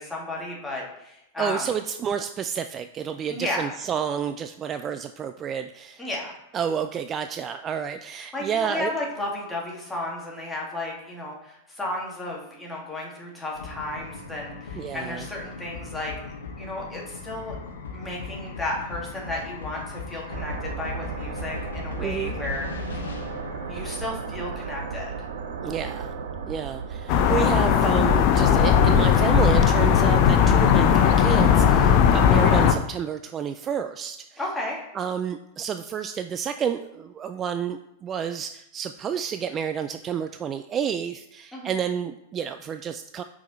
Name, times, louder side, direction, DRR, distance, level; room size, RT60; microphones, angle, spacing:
voice 1, 0.0-1.6 3.3-3.7 6.0-6.3 8.3-16.1 16.6-17.5 17.9-23.0 23.7-25.1 34.4-34.8 41.5-41.7, left 2 dB, 10° left, -3 dB, 2.2 m, -33 dB
voice 2, 1.4-6.0 6.5-8.9 14.7-15.3 22.0-22.4 25.6-26.1 26.5-34.4 34.9-43.2, right 8 dB, 30° right, 9 dB, 0.3 m, -30 dB
sound 1, 13.5-26.3, left 4 dB, 75° left, 1.1 m, -38 dB
sound 2, 20.3-27.4, right 5 dB, 65° right, 0.7 m, -35 dB
sound 3, 27.1-32.7, left 8 dB, 50° left, 0.6 m, -18 dB
5.7 x 4.8 x 4.1 m, 0.84 s
hypercardioid pair, 95°, 0 cm